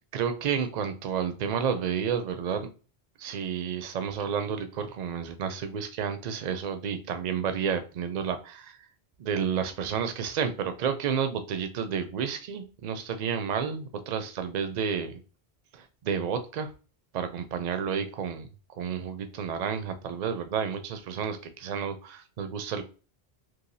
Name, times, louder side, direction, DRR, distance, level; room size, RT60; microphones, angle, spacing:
voice 1, 0.1-2.7 3.2-8.8 9.2-15.2 15.7-16.7 17.1-22.8, right 7 dB, 55° right, 9 dB, 0.5 m, -31 dB
3.2 x 2.4 x 2.6 m, 0.35 s
omnidirectional pair, 1.1 m